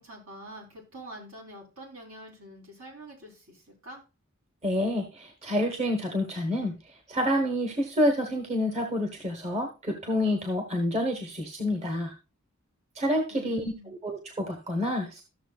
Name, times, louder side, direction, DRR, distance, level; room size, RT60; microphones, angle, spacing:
voice 1, 0.0-4.0 13.3-13.9, right 1 dB, 75° right, -1 dB, 4.0 m, -46 dB
voice 2, 4.6-6.8 7.1-12.1 12.9-15.2, left 1 dB, 30° right, 3 dB, 1.3 m, -28 dB
13.5 x 6.9 x 2.4 m, 0.30 s
head